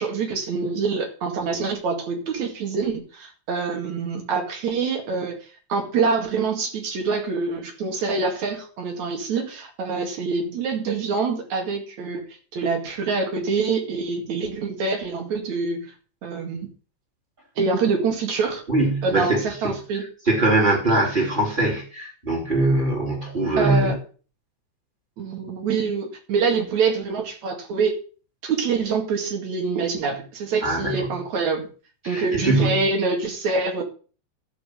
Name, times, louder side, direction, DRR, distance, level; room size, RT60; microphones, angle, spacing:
voice 1, 0.0-5.4 5.7-12.3 12.5-15.9 16.2-16.7 17.6-18.6 19.0-20.0 23.6-24.0 25.2-27.9 28.4-31.7 32.1-33.8, right 4 dB, 55° right, 3 dB, 3.3 m, -25 dB
voice 2, 18.7-19.7 20.3-24.0 30.6-31.1 32.0-32.8, right 2 dB, 15° right, -2 dB, 3.8 m, -22 dB
12.5 x 5.7 x 6.7 m, 0.38 s
omnidirectional pair, 4.0 m